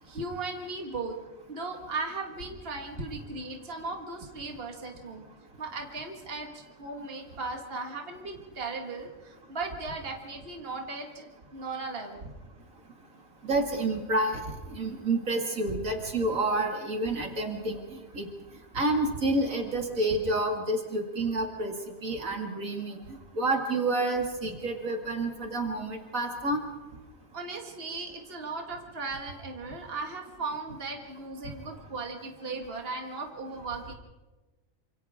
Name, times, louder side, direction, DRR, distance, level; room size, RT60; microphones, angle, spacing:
voice 1, 0.0-1.2 1.5-5.3 5.6-12.3 16.4-16.6 27.3-33.9, right 3 dB, 45° right, 2 dB, 2.1 m, -37 dB
voice 2, 13.4-18.3 18.7-21.7 22.0-23.0 23.3-26.6, right 2 dB, 70° right, 2 dB, 2.8 m, -29 dB
28.0 x 26.0 x 3.7 m, 1.2 s
omnidirectional pair, 1.5 m